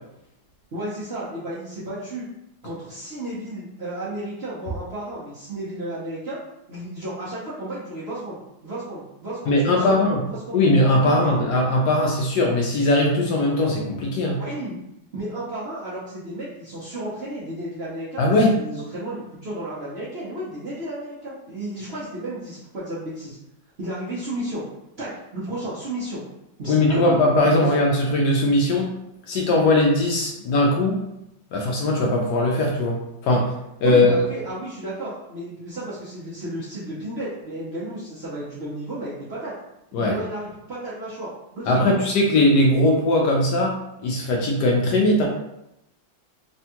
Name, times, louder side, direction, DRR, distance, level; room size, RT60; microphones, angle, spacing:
voice 1, 0.7-2.3 2.6-6.4 6.7-10.0 10.3-10.6 11.0-11.4 14.4-14.8 15.1-23.4 23.8-24.6 25.0-26.2 26.6-27.2 27.4-27.7 33.8-39.5 40.0-42.0, right 1 dB, 60° right, -9 dB, 0.6 m, -33 dB
voice 2, 9.5-10.2 10.5-14.4 18.2-18.6 26.7-28.9 29.3-31.0 31.5-33.0 33.2-33.5 33.8-34.1 39.9-40.2 41.7-45.3, left 1 dB, 70° left, -1 dB, 1.0 m, -19 dB
3.4 x 2.3 x 2.8 m, 0.84 s
omnidirectional pair, 2.0 m